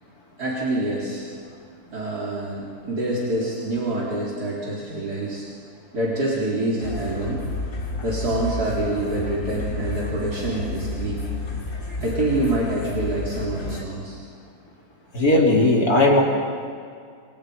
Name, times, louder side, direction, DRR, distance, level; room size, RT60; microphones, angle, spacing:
voice 1, 0.4-1.3 1.9-5.4 5.9-7.4 8.0-11.2 12.0-14.2, right 2 dB, 85° right, -6 dB, 4.5 m, -26 dB
sound 1, 6.8-13.8, left 3 dB, 55° left, 2.7 m, -31 dB
voice 2, 15.1-16.2, left 2 dB, 70° left, -1 dB, 4.0 m, -17 dB
29.5 x 26.0 x 5.2 m, 2.3 s
omnidirectional pair, 1.6 m